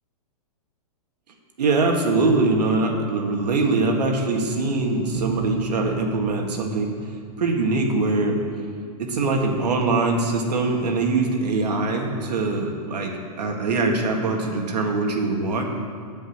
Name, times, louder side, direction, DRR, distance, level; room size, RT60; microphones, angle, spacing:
voice 1, 1.6-6.9 7.4-8.4 9.0-15.7, right 3 dB, 80° right, 2 dB, 1.8 m, -22 dB
Bowed string instrument, 5.1-7.9, right 9 dB, 20° right, 0.7 m, -35 dB
9.7 x 5.3 x 8.0 m, 2.1 s
hypercardioid pair, 160°, 21 cm